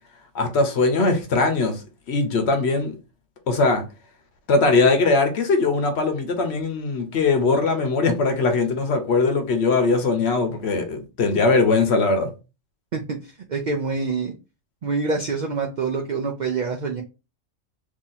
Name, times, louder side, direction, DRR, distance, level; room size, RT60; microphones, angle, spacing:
voice 1, 0.3-1.8 2.1-2.9 3.5-3.8 4.5-12.3, left 3 dB, 60° left, 0.9 m, -20 dB
voice 2, 12.9-14.3 14.8-17.0, right 4 dB, 85° right, 0.4 m, -26 dB
2.8 x 2.8 x 3.9 m
omnidirectional pair, 1.4 m